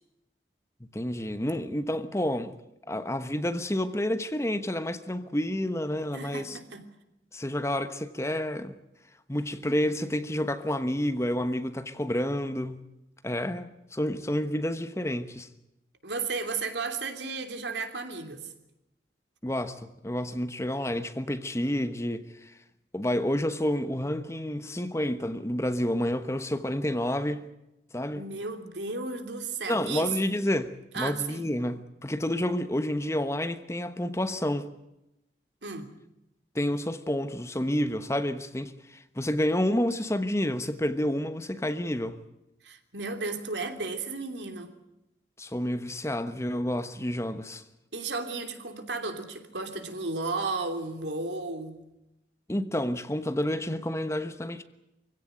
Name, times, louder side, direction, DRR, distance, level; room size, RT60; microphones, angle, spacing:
voice 1, 0.8-2.6 2.9-6.6 7.3-8.8 9.3-12.8 13.2-15.5 19.4-22.5 22.9-27.5 27.9-28.2 29.7-34.7 36.5-42.2 45.4-47.6 52.5-54.6, left 1 dB, 15° left, 1.1 m, -29 dB
voice 2, 6.1-6.8 16.0-18.5 28.1-30.1 30.9-31.5 35.6-35.9 42.6-44.7 47.9-51.8, right 3 dB, 90° right, 3.0 m, -34 dB
24.5 x 16.5 x 9.2 m
head